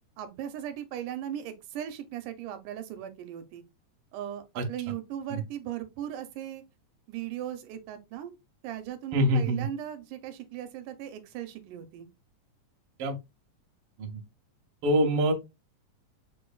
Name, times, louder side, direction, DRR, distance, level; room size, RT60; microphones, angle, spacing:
voice 1, 0.2-3.6 4.1-4.4 4.7-6.6 7.1-8.3 8.6-12.1, right 11 dB, 90° right, 2.2 m, -38 dB
voice 2, 9.1-9.6 13.0-13.2 14.0-14.1 14.8-15.3, equal, 65° right, 1.5 m, -24 dB
6.9 x 3.2 x 2.3 m
omnidirectional pair, 3.6 m